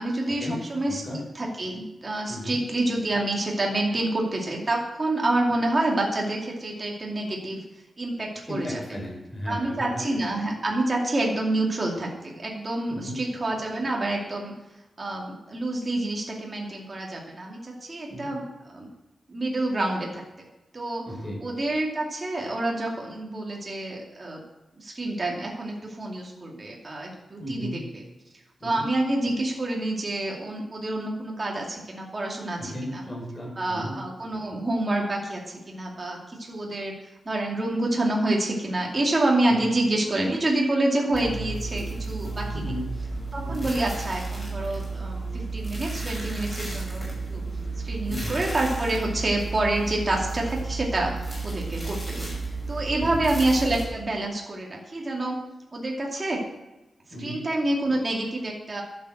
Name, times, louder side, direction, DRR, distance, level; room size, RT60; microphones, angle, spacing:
voice 1, 0.0-1.0 1.3-7.6 8.0-8.8 9.5-14.5 15.0-18.9 19.3-20.2 20.7-21.1 21.4-24.4 24.8-28.0 28.6-33.0 33.6-36.9 37.3-42.8 43.3-47.4 47.8-52.3 52.7-55.4 55.7-56.4 57.2-58.8, right 2 dB, 30° right, -1 dB, 2.4 m, -27 dB
voice 2, 0.9-1.2 2.3-2.6 8.5-10.1 12.9-13.2 18.1-18.3 21.0-21.4 27.4-27.8 28.6-28.8 32.6-33.9 39.5-39.7 42.5-42.8 43.5-43.7 48.1-48.4 53.0-53.3 57.1-57.4, equal, 20° left, -2 dB, 5.3 m, -35 dB
sound 1, 41.1-53.9, right 3 dB, ahead, 5.8 m, -32 dB
12.0 x 7.5 x 7.8 m, 1.0 s
wide cardioid pair, 145°, 0 cm